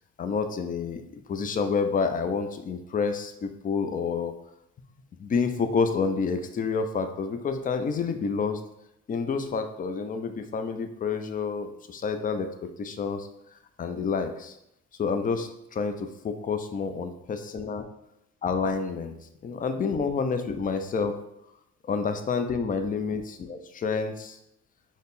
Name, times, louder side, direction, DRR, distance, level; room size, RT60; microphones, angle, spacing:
voice 1, 0.2-4.3 5.2-8.6 9.1-13.3 13.8-14.6 15.0-17.9 18.4-19.2 19.4-21.2 21.8-24.4, left 5 dB, 30° left, 7 dB, 0.4 m, -29 dB
4.0 x 2.0 x 3.6 m, 0.80 s
cardioid pair, 90°, 30 cm